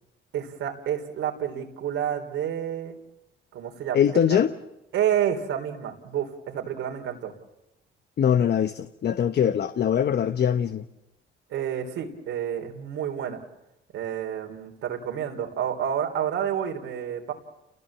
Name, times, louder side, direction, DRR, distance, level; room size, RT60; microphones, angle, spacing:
voice 1, 0.3-3.0 3.5-4.0 4.3-4.4 4.9-7.3 11.5-13.4 13.9-17.3, right 9 dB, 85° right, 3 dB, 3.6 m, -29 dB
voice 2, 3.9-4.5 8.2-10.9, left 8 dB, 55° left, 9 dB, 1.1 m, -22 dB
29.5 x 20.0 x 7.5 m, 0.96 s
cardioid pair, 90°, 20 cm